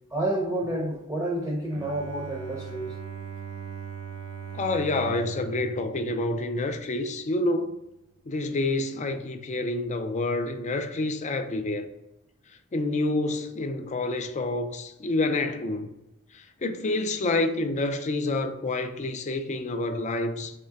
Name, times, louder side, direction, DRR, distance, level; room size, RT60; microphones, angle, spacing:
voice 1, 0.1-3.0, right 1 dB, 10° right, 0.7 m, -29 dB
Bowed string instrument, 1.7-7.0, right 7 dB, 60° right, 0.7 m, -40 dB
voice 2, 4.5-7.7 8.3-11.9 12.7-15.9 16.6-20.5, left 2 dB, 35° left, 0.4 m, -28 dB
3.7 x 3.2 x 4.4 m
head